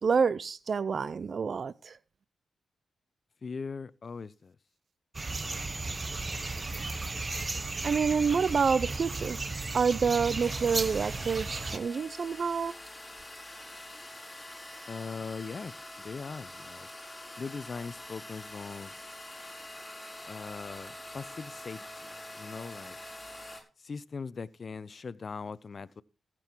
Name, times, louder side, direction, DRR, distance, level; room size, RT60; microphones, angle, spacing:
voice 1, 0.0-2.0 7.8-9.4 9.7-12.7, right 5 dB, 55° right, 0.5 m, -28 dB
voice 2, 3.4-4.5 14.9-16.9 17.4-18.9 20.3-21.9 22.4-23.0 23.8-26.0, left 5 dB, 50° left, 0.7 m, -40 dB
sound 1, 5.1-11.8, right 3 dB, 35° right, 1.2 m, -35 dB
sound 2, 10.4-23.6, left 1 dB, 15° left, 5.3 m, -45 dB
15.5 x 7.7 x 4.6 m
cardioid pair, 65°, 0 cm